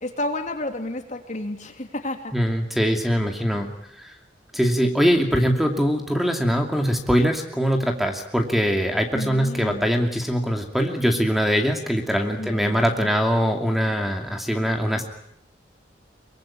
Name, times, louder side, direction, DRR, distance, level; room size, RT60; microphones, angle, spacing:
voice 1, 0.0-2.3 9.1-9.9 12.4-13.1, left 1 dB, 45° left, 5 dB, 3.1 m, -31 dB
voice 2, 2.3-3.7 4.0-4.1 4.5-15.0, equal, ahead, 4 dB, 2.6 m, -22 dB
23.5 x 23.5 x 8.8 m, 0.70 s
head